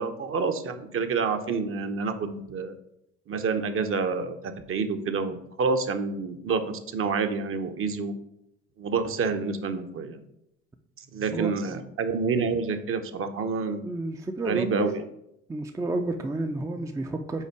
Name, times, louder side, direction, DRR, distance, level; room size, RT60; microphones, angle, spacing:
voice 1, 0.0-2.8 3.3-8.1 8.8-10.2 11.1-13.8 14.4-15.0, right 4 dB, 40° right, 7 dB, 0.9 m, -28 dB
voice 2, 13.8-14.9 15.5-17.4, right 2 dB, 10° right, 5 dB, 0.5 m, -30 dB
5.6 x 4.3 x 4.7 m, 0.78 s
hypercardioid pair, 70°, 34 cm